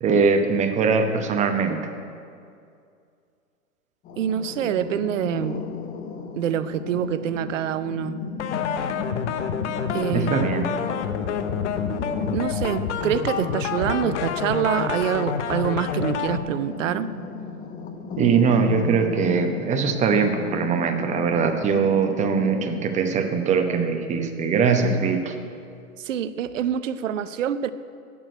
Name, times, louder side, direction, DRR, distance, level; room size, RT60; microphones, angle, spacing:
voice 1, 0.0-1.8 10.1-10.7 18.2-25.3, right 5 dB, 15° right, 6 dB, 0.9 m, -21 dB
sound 1, 4.1-22.9, left 4 dB, 20° left, 0.8 m, -35 dB
voice 2, 4.2-5.6 6.4-8.2 9.9-10.5 12.3-17.1 26.0-27.7, right 9 dB, 60° right, 13 dB, 0.7 m, -26 dB
sound 2, 8.4-16.4, left 7 dB, 55° left, 0.9 m, -28 dB
8.7 x 8.5 x 9.1 m, 2.4 s
figure-of-eight pair, 115°, 43 cm